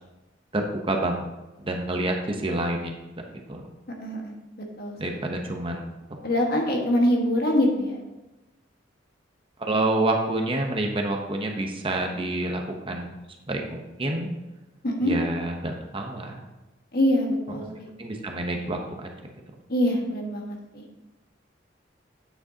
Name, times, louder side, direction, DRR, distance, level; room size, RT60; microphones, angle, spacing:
voice 1, 0.5-1.3 1.6-2.9 3.5-3.6 5.0-5.8 9.6-13.1 13.5-14.3 15.0-16.4 18.0-19.3, right 2 dB, 30° right, 2 dB, 0.8 m, -28 dB
voice 2, 4.0-4.3 4.6-5.2 6.2-8.0 14.8-15.1 16.9-17.9 19.7-20.8, left 1 dB, 55° left, 0 dB, 1.5 m, -24 dB
8.8 x 7.6 x 2.8 m, 1.0 s
head